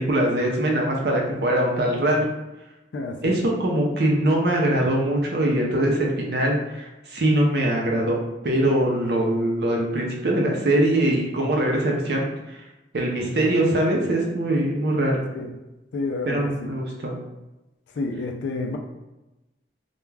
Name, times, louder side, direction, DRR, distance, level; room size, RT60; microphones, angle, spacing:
voice 1, 0.0-2.3 3.2-8.2 8.4-12.6 12.9-15.2 16.3-17.2, right 1 dB, 65° right, -1 dB, 0.6 m, -22 dB
voice 2, 2.9-3.4 15.3-15.5 15.9-16.7 18.0-18.8, left 3 dB, 85° left, 2 dB, 0.4 m, -29 dB
2.3 x 2.2 x 3.2 m, 1.0 s
head